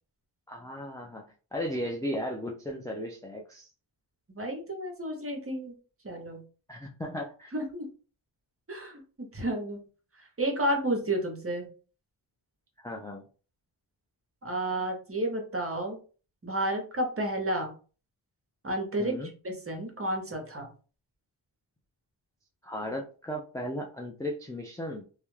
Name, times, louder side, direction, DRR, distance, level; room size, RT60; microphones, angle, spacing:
voice 1, 0.5-1.2 1.5-3.7 6.7-7.5 12.8-13.2 19.0-19.3 22.6-25.0, equal, 10° left, 0 dB, 0.3 m, -35 dB
voice 2, 4.3-5.7 6.0-6.4 7.5-7.9 8.7-9.8 10.4-11.7 14.4-16.0 16.4-17.7 18.6-19.2 19.4-20.7, right 1 dB, 30° right, 3 dB, 0.8 m, -31 dB
2.3 x 2.1 x 3.1 m, 0.37 s
wide cardioid pair, 70°, 47 cm